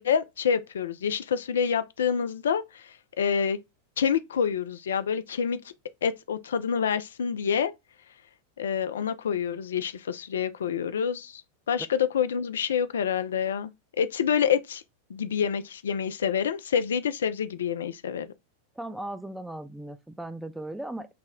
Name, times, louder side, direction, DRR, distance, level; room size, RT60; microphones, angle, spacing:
voice 1, 0.0-3.6 4.0-5.6 6.0-7.7 8.6-11.4 11.7-13.7 14.0-14.8 15.1-18.3, left 7 dB, 65° left, 0.3 m, -27 dB
voice 2, 18.8-21.1, right 1 dB, 5° right, 0.4 m, -37 dB
5.7 x 2.1 x 3.5 m
figure-of-eight pair, 90°, 0 cm